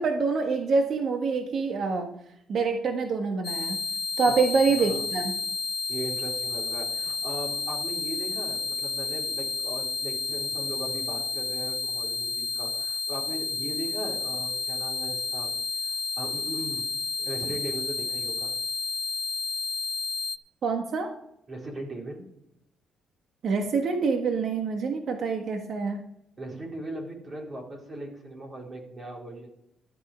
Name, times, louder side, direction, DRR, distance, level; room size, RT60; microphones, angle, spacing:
voice 1, 0.0-2.1 2.5-3.8 4.2-5.3 20.6-21.1 23.4-26.0, right 4 dB, 60° right, 4 dB, 1.5 m, -26 dB
sound 1, 3.4-20.4, left 4 dB, 45° left, 0.8 m, -31 dB
voice 2, 4.8-5.1 5.9-15.5 15.8-16.9 17.2-18.5 21.5-22.2 26.4-29.5, right 1 dB, 35° right, -1 dB, 4.2 m, -38 dB
12.5 x 8.9 x 5.0 m, 0.78 s
cardioid pair, 90°, 0 cm